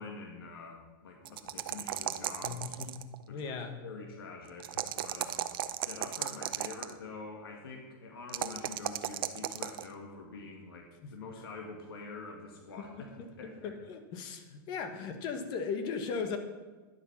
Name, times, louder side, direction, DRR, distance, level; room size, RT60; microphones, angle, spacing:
voice 1, 0.0-2.7 3.3-13.7, left 3 dB, 90° left, 1 dB, 1.9 m, -46 dB
sound 1, 1.3-3.2 4.6-6.9 8.3-9.9, right 12 dB, 75° right, 0.7 m, -35 dB
voice 2, 2.4-2.9 3.3-3.8 11.0-11.1 12.8-12.9 13.2-13.3 13.6-16.4, left 5 dB, 35° left, 7 dB, 1.3 m, -37 dB
10.5 x 8.0 x 5.9 m, 1.3 s
supercardioid pair, 145°, 12 cm